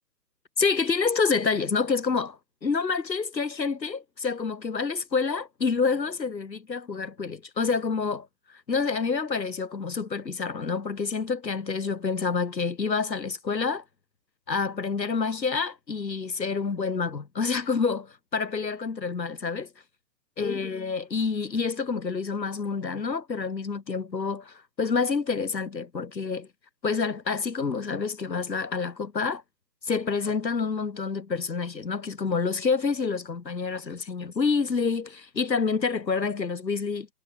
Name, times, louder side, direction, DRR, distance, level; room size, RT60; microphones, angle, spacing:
voice 1, 0.6-8.3 8.7-13.8 14.5-19.7 20.4-26.5 26.8-29.4 29.9-37.1, left 5 dB, 85° left, 2.0 m, -28 dB
figure-of-eight pair, 130°, 49 cm